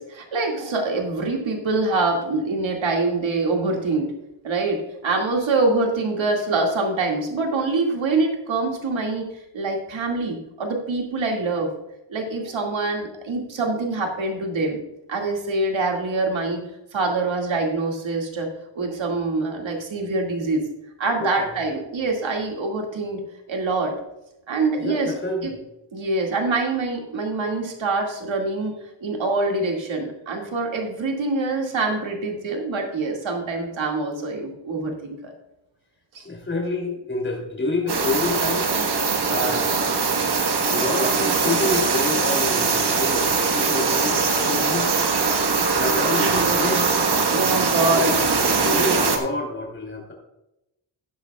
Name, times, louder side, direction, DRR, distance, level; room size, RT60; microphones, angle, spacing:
voice 1, 0.0-4.1 4.4-9.3 9.5-11.7 12.1-14.8 15.1-16.6 16.9-18.5 18.8-20.7 21.0-23.2 23.5-23.9 24.5-25.2 25.4-25.5 25.9-35.3 36.1-36.2 46.2-48.2, right 3 dB, 85° right, 1 dB, 2.2 m, -25 dB
voice 2, 21.2-21.6 24.8-25.6 36.2-38.7 39.3-39.9 40.7-44.9 45.8-46.8 47.3-50.1, left 2 dB, 25° left, 0 dB, 3.0 m, -28 dB
sound 1, 37.9-49.2, right 4 dB, 60° right, 1.4 m, -21 dB
14.0 x 10.0 x 2.3 m, 0.90 s
wide cardioid pair, 95°, 45 cm